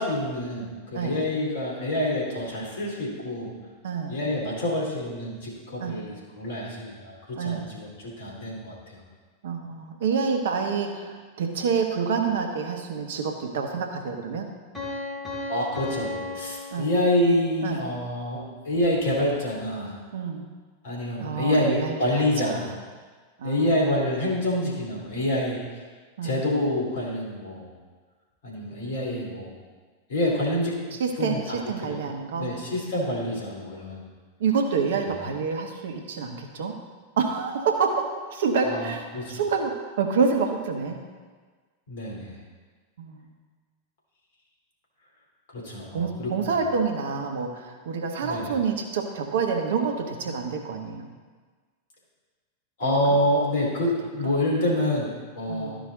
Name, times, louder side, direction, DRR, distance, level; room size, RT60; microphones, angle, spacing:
voice 1, 0.0-3.5 4.1-9.0 15.5-20.0 20.8-22.7 23.4-25.6 26.2-27.7 28.4-29.5 30.1-30.8 31.2-31.6 31.9-32.0 32.4-34.1 35.1-35.2 38.6-39.4 41.9-42.4 45.5-46.6 48.2-48.5 52.8-55.8, left 1 dB, 60° left, -3 dB, 2.7 m, -27 dB
voice 2, 3.8-4.2 5.8-6.0 7.4-7.6 9.4-14.4 16.7-16.9 17.6-17.8 20.1-20.4 21.2-22.7 23.4-23.7 26.2-26.4 30.9-32.5 34.4-36.7 37.2-39.0 39.3-41.0 43.0-43.3 45.9-51.1 52.8-53.2 54.2-54.3 54.6-54.9 55.5-55.8, right 5 dB, 60° right, 4 dB, 1.0 m, -28 dB
Piano, 14.7-17.5, left 2 dB, 15° left, 2.7 m, -35 dB
13.0 x 5.1 x 3.9 m, 1.5 s
figure-of-eight pair, 90°, 0 cm